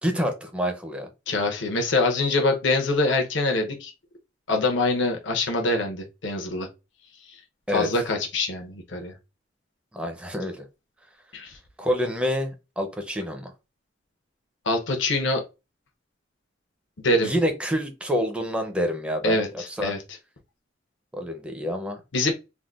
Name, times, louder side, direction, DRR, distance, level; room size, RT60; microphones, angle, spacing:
voice 1, 0.0-1.1 7.7-7.9 9.9-10.7 11.8-13.5 17.2-19.4 19.8-19.9 21.2-22.0, equal, 5° right, 0.5 m, -27 dB
voice 2, 1.3-3.9 4.5-6.7 7.3-7.4 7.7-9.1 11.3-11.6 14.6-15.4 17.0-17.3 19.2-20.0 22.1-22.3, left 2 dB, 75° left, 0.7 m, -24 dB
3.6 x 2.1 x 2.4 m
head